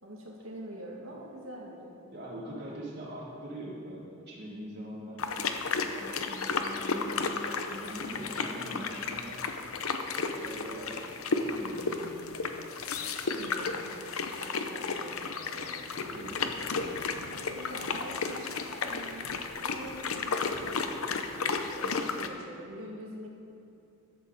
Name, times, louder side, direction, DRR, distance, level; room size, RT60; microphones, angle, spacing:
voice 1, 0.0-2.2 13.4-14.0 14.4-15.9 17.5-23.3, equal, 70° right, -2 dB, 2.4 m, -45 dB
voice 2, 2.1-5.3 5.8-9.4 10.3-11.0 11.4-12.3 15.9-16.4 21.8-22.1, right 1 dB, 55° right, -6 dB, 3.5 m, -42 dB
sound 1, 5.2-22.3, left 4 dB, 75° left, 0.8 m, -33 dB
14.0 x 12.0 x 4.1 m, 2.7 s
head